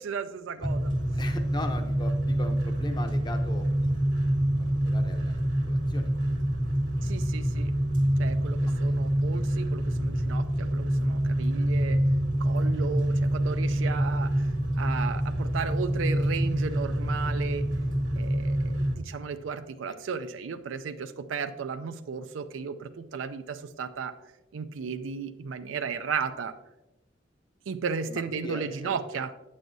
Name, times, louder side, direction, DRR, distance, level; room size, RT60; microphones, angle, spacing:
voice 1, 0.0-0.9 7.0-7.7 8.2-12.0 12.4-14.3 14.8-17.7 18.2-24.1 24.5-26.5 27.7-29.3, right 5 dB, 90° right, 8 dB, 0.4 m, -34 dB
sound 1, 0.6-19.0, right 1 dB, 70° right, 1.4 m, -26 dB
voice 2, 1.0-4.0 4.8-5.3 5.7-6.3 8.9-9.4 28.1-29.2, left 1 dB, 20° left, 6 dB, 0.6 m, -40 dB
9.1 x 7.5 x 2.6 m, 0.99 s
head